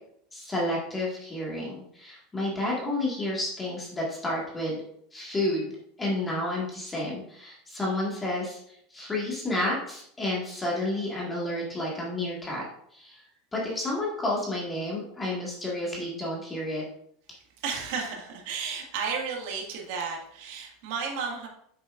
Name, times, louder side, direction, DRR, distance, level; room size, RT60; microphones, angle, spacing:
voice 1, 0.3-4.8 5.1-5.7 6.0-12.6 12.9-13.2 13.5-16.8, left 1 dB, 10° left, -4 dB, 1.8 m, -30 dB
voice 2, 17.6-21.5, right 5 dB, 60° right, 0 dB, 1.9 m, -33 dB
8.1 x 6.9 x 2.5 m, 0.68 s
supercardioid pair, 160°, 0 cm